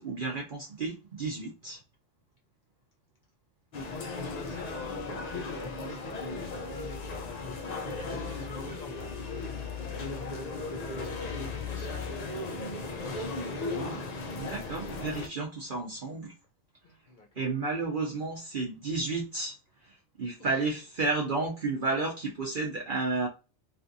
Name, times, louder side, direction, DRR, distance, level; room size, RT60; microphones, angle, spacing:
voice 1, 0.0-1.8 13.7-14.0 14.4-16.3 17.4-19.5 20.2-23.3, right 3 dB, 55° right, 0.6 m, -32 dB
sound 1, 3.7-15.3, left 3 dB, 85° left, 0.3 m, -36 dB
voice 2, 4.0-6.2 6.8-7.5 7.9-10.4 11.0-12.4 13.0-13.5 16.8-17.5 20.4-20.6, left 3 dB, 45° left, 0.7 m, -49 dB
3.3 x 2.4 x 2.6 m
omnidirectional pair, 1.4 m